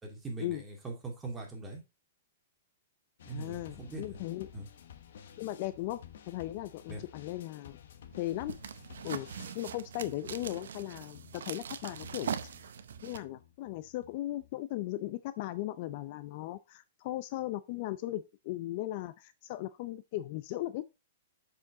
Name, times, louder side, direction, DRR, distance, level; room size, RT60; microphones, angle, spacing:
voice 1, 0.0-1.8 3.2-4.2 4.5-4.7 6.9-7.0, right 2 dB, 10° right, 2.3 m, -41 dB
sound 1, 3.2-14.6, left 9 dB, 70° left, 1.1 m, -54 dB
voice 2, 3.3-4.5 5.4-7.8 8.2-8.6 9.0-9.3 9.5-12.3 12.6-12.7 13.0-21.0, left 15 dB, 45° left, 0.4 m, -37 dB
sound 2, 8.1-13.2, right 8 dB, 80° right, 0.7 m, -41 dB
7.3 x 5.0 x 3.7 m
hypercardioid pair, 145°, 0 cm